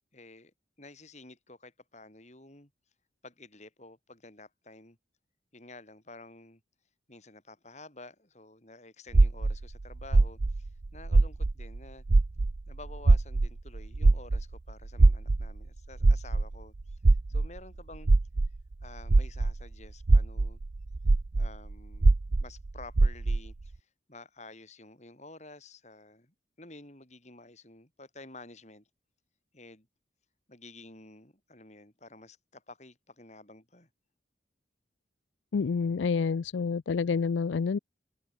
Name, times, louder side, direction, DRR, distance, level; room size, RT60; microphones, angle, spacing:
voice 1, 0.1-2.7 3.2-5.0 5.5-6.6 7.1-12.0 12.7-17.0 17.3-18.1 18.8-20.6 21.4-22.1 22.4-23.8 24.1-28.9 29.5-29.9 30.5-33.9, left 2 dB, 40° left, 4.4 m, -51 dB
sound 1, 9.1-11.8 12.1-19.6 20.0-23.5, right 3 dB, 70° right, 0.7 m, -23 dB
voice 2, 35.5-37.8, left 5 dB, 85° left, 0.4 m, -28 dB
head